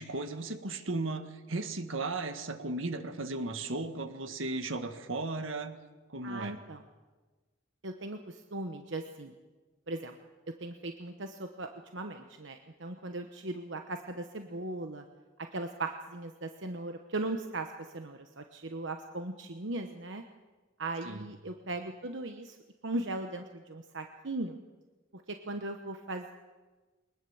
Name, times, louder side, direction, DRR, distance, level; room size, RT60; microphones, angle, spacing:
voice 1, 0.0-5.7 6.1-6.6 21.0-21.3, right 2 dB, 80° right, 8 dB, 1.8 m, -36 dB
voice 2, 6.2-6.8 7.8-9.3 9.9-10.1 10.6-15.0 15.5-17.7 17.9-20.2 20.8-22.5 22.8-24.6 25.1-25.2 25.5-26.3, right 2 dB, 60° right, 5 dB, 1.1 m, -38 dB
23.0 x 20.5 x 7.2 m, 1.3 s
head